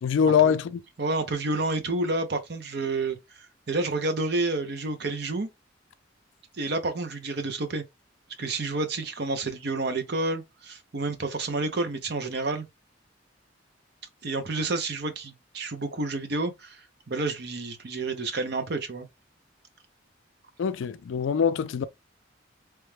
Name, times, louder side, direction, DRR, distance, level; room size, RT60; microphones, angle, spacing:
voice 1, 0.0-0.8 20.6-21.9, left 7 dB, 80° left, 0.3 m, -23 dB
voice 2, 1.0-5.5 6.5-7.8 8.4-12.7 14.2-19.1, right 2 dB, 55° right, 0.7 m, -29 dB
3.0 x 2.2 x 3.2 m
head